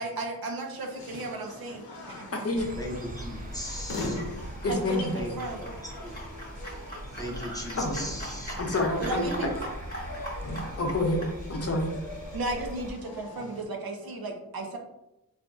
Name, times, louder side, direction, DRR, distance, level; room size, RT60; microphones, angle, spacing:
voice 1, 0.0-2.3 4.7-5.6 9.0-9.5 12.3-14.8, right 2 dB, 75° right, 3 dB, 0.6 m, -34 dB
sound 1, 0.7-13.6, left 2 dB, 80° left, 0.6 m, -42 dB
sound 2, 0.9-11.4, equal, 25° left, 1.2 m, -43 dB
voice 2, 2.0-2.8 4.3-5.1 6.8-6.9 7.8-8.1 8.6-9.5 10.7-11.9, left 2 dB, 40° left, 2 dB, 0.6 m, -29 dB
sound 3, 2.6-12.9, right 1 dB, 25° right, 0.4 m, -41 dB
voice 3, 2.8-4.2 5.1-5.3 5.6-6.1 7.1-8.5, equal, 10° left, -1 dB, 0.8 m, -38 dB
3.7 x 2.5 x 2.3 m, 0.89 s
wide cardioid pair, 55°, 36 cm